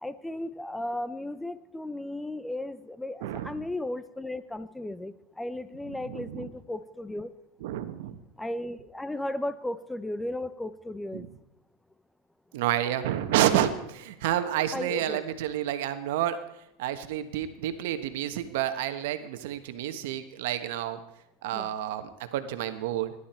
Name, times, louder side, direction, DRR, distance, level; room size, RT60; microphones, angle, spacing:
voice 1, 0.0-7.3 8.4-11.3 14.7-15.2 21.5-21.7, left 1 dB, 5° left, 14 dB, 0.8 m, -35 dB
voice 2, 3.2-3.6 5.9-6.5 7.6-8.2 11.1-11.3 12.5-16.4 16.8-21.0 21.4-23.1, right 11 dB, 75° right, 9 dB, 1.4 m, -29 dB
19.0 x 11.5 x 4.5 m, 0.84 s
supercardioid pair, 125°, 0 cm